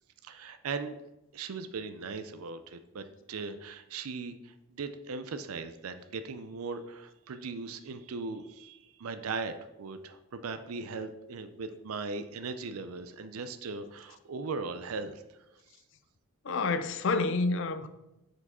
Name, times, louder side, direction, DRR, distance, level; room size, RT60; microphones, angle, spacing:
voice 1, 0.2-1.0 1.3-15.4, right 4 dB, 75° right, 0.5 m, -39 dB
voice 2, 16.5-17.9, left 3 dB, 55° left, 0.5 m, -28 dB
6.7 x 4.6 x 4.2 m
head